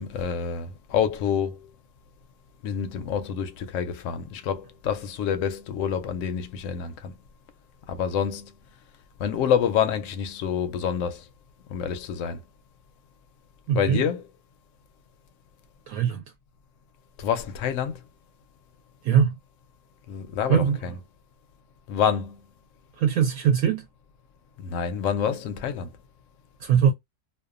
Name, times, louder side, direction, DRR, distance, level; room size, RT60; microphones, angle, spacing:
voice 1, 0.0-1.7 2.6-7.1 7.9-8.5 9.2-11.2 11.7-12.4 13.7-14.3 17.2-18.0 20.1-21.0 21.9-22.4 24.6-25.9, left 8 dB, 70° left, 0.8 m, -27 dB
voice 2, 13.7-14.0 15.9-16.2 19.0-19.3 20.5-20.8 23.0-23.8 26.6-26.9, right 8 dB, 70° right, 1.0 m, -21 dB
2.6 x 2.2 x 2.4 m
omnidirectional pair, 1.7 m